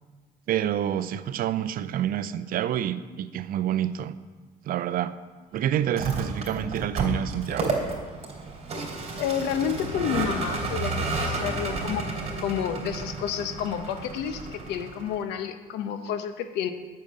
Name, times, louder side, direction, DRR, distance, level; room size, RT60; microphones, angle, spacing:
voice 1, 0.5-4.2 4.7-5.1 5.5-7.8 10.8-10.9, right 10 dB, 60° right, 14 dB, 0.6 m, -28 dB
Vehicle, 5.8-15.2, right 3 dB, 40° right, 3.2 m, -31 dB
voice 2, 9.2-12.1 12.4-16.7, left 8 dB, 85° left, 9 dB, 1.0 m, -30 dB
10.0 x 6.7 x 8.6 m, 1.4 s
cardioid pair, 110°, 17 cm